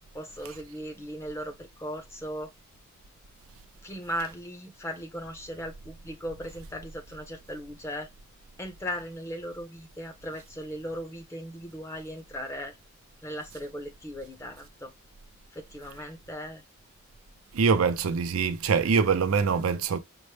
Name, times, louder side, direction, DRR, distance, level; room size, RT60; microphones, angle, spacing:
voice 1, 0.1-2.5 3.8-8.1 8.6-12.8 13.2-14.9 15.5-16.6, equal, 15° left, 0.8 m, -37 dB
voice 2, 17.5-20.0, right 5 dB, 80° right, 0.5 m, -24 dB
5.2 x 2.1 x 3.2 m
head